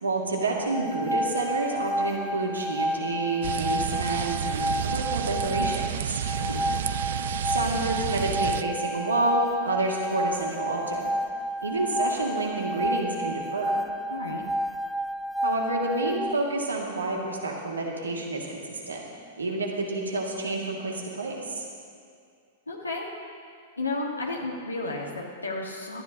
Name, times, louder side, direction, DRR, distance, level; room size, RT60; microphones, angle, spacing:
voice 1, 0.0-6.2 7.5-11.1 11.6-13.8 15.4-19.0 19.4-21.7, right 2 dB, 80° right, -1 dB, 2.1 m, -29 dB
sound 1, 0.6-16.4, equal, ahead, 0.4 m, -31 dB
sound 2, 3.4-8.6, right 10 dB, 60° right, 0.4 m, -31 dB
voice 2, 14.1-14.4 22.7-23.1 23.8-26.0, left 2 dB, 85° left, -1 dB, 1.5 m, -32 dB
18.0 x 13.0 x 2.8 m, 2.3 s
figure-of-eight pair, 100°, 0 cm